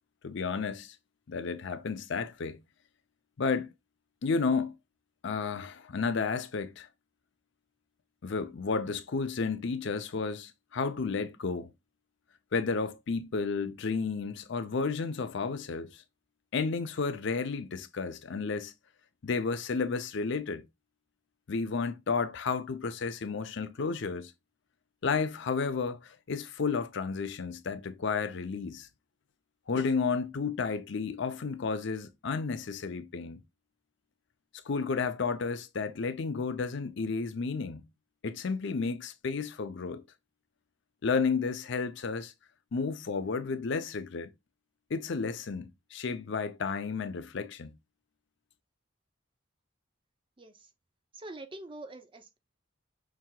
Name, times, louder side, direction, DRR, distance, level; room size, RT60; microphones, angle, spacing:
voice 1, 0.2-1.0 1.3-2.6 3.4-3.7 4.2-4.8 5.2-6.9 8.2-11.7 12.5-16.0 16.5-18.7 19.2-20.6 21.5-24.3 25.0-28.9 29.7-33.4 34.6-37.8 38.2-40.0 41.0-42.3 42.7-44.3 44.9-47.7, left 4 dB, 60° left, 0.5 m, -32 dB
voice 2, 50.4-50.7 51.1-52.4, right 2 dB, 25° right, 0.6 m, -45 dB
5.9 x 2.8 x 2.3 m
head